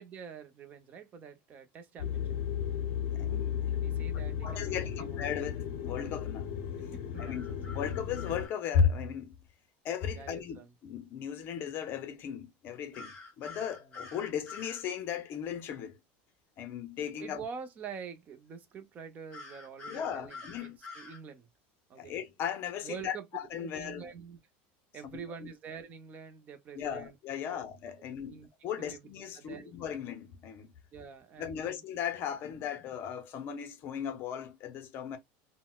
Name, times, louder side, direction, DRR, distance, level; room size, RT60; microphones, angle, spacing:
voice 1, 0.0-2.2 3.8-5.2 7.1-7.6 10.1-10.7 17.2-21.5 21.9-22.2 22.8-23.2 23.6-24.4 24.9-27.2 27.5-27.7 28.0-28.5 28.8-29.1 29.3-29.7 30.9-31.8, right 6 dB, 25° right, 0.5 m, -46 dB
sound 1, 2.0-8.5, left 9 dB, 85° left, 0.5 m, -35 dB
voice 2, 3.0-3.7 4.4-6.5 7.2-7.5 7.7-9.3 9.8-16.0 16.6-17.4 19.9-20.8 22.0-24.1 25.1-25.5 26.7-30.7 31.4-35.2, left 7 dB, 40° left, 0.6 m, -36 dB
sound 2, 7.2-8.5 12.9-14.8 19.3-21.2, left 3 dB, 15° left, 1.5 m, -47 dB
3.8 x 2.0 x 2.2 m
cardioid pair, 160°, 6 cm